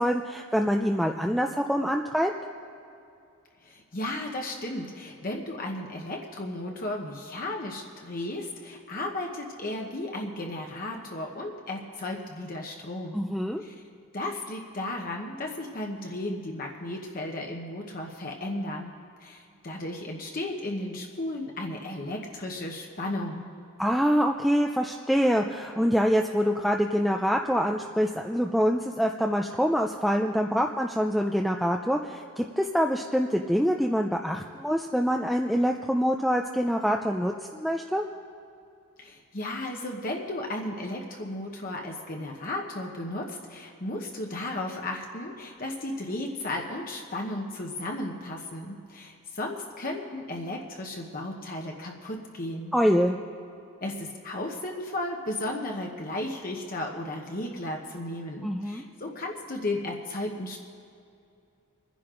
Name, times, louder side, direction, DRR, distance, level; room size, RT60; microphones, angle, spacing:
voice 1, 0.0-2.3 13.1-13.6 23.8-38.0 52.7-53.2 58.4-58.8, equal, ahead, 1 dB, 0.4 m, -25 dB
voice 2, 3.6-13.3 13.6-13.7 14.1-18.9 19.2-23.5 39.0-52.7 53.8-60.6, left 1 dB, 40° left, 1 dB, 1.0 m, -34 dB
25.0 x 10.5 x 3.8 m, 2.5 s
head